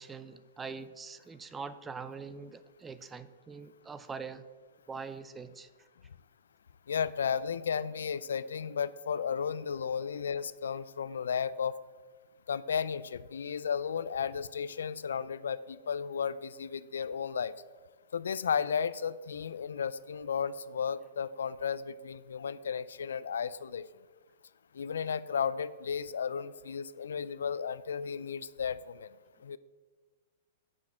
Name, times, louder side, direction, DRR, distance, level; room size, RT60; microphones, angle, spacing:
voice 1, 0.0-4.5 4.9-5.9, right 5 dB, 15° right, 13 dB, 0.5 m, -43 dB
voice 2, 6.9-11.7 12.5-17.5 18.1-23.9 24.7-29.1 29.4-29.6, left 7 dB, 85° left, 17 dB, 0.4 m, -34 dB
7.5 x 6.1 x 7.1 m, 1.4 s
hypercardioid pair, 135°, 0 cm